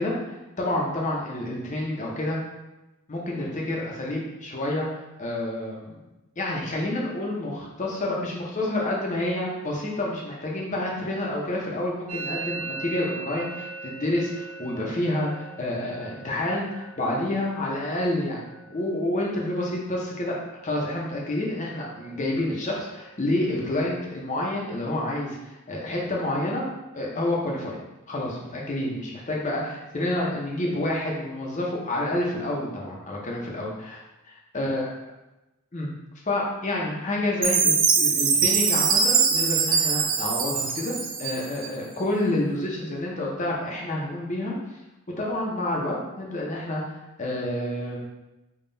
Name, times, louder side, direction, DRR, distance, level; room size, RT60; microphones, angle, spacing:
voice 1, 0.0-2.4 3.1-4.9 5.2-6.0 6.4-20.4 20.6-26.6 26.9-27.8 28.1-34.0 34.2-34.9 35.7-35.9 36.3-44.8 45.2-48.1, left 1 dB, 35° left, -3 dB, 0.7 m, -29 dB
Musical instrument, 12.1-19.7 20.0-20.6 20.8-21.4 21.7-23.7, right 4 dB, 80° right, 0.8 m, -41 dB
Chime, 37.4-41.7, right 6 dB, 40° right, 0.3 m, -22 dB
3.7 x 2.3 x 3.9 m, 0.99 s
head